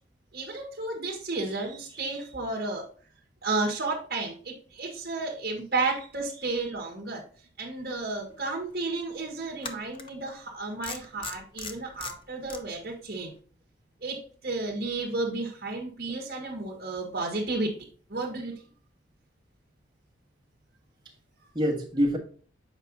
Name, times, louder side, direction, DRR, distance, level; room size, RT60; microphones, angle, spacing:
voice 1, 0.3-2.9 3.4-7.2 7.6-13.3 14.0-17.7 18.1-18.6, right 3 dB, 55° right, -1 dB, 1.7 m, -32 dB
voice 2, 1.5-2.2 5.8-6.0 6.4-6.6 21.5-22.2, equal, 25° right, 1 dB, 1.5 m, -29 dB
sound 1, 8.2-8.3 9.6-10.1 10.8-12.6, left 4 dB, 30° left, 0.7 m, -38 dB
8.0 x 4.9 x 2.7 m, 0.43 s
head